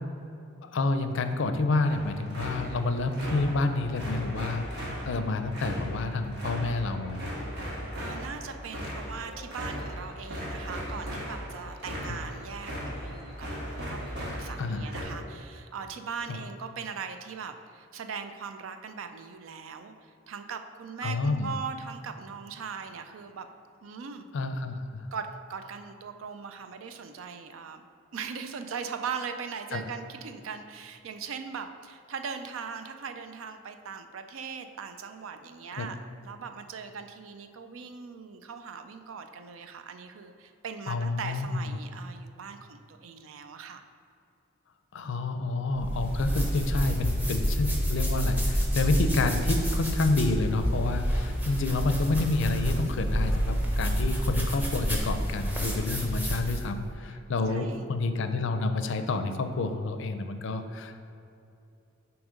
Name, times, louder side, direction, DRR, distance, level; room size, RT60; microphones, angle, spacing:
voice 1, 0.6-7.3 12.1-12.2 14.6-14.8 21.0-21.5 24.3-25.1 29.7-29.8 35.8-35.9 40.9-41.5 44.9-61.0, left 3 dB, 65° left, 8 dB, 0.4 m, -29 dB
sound 1, 1.8-15.0, equal, 55° right, 1.4 m, -37 dB
voice 2, 8.0-23.5 23.8-24.3 25.1-27.8 28.1-36.0 36.2-43.8 57.1-57.2 57.5-57.9, right 6 dB, 80° right, 8 dB, 0.4 m, -40 dB
sound 2, 45.7-56.7, equal, 10° right, 0.8 m, -28 dB
7.2 x 3.0 x 5.1 m, 2.7 s
head